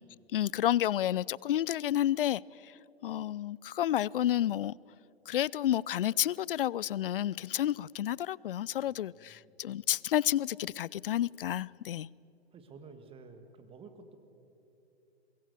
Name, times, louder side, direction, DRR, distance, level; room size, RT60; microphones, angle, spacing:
voice 1, 0.3-2.4 3.0-4.8 5.3-12.1, left 12 dB, 55° left, 0.4 m, -30 dB
voice 2, 8.9-9.7 12.5-14.2, right 4 dB, 15° right, 1.8 m, -52 dB
23.5 x 22.0 x 7.0 m
figure-of-eight pair, 110°, 33 cm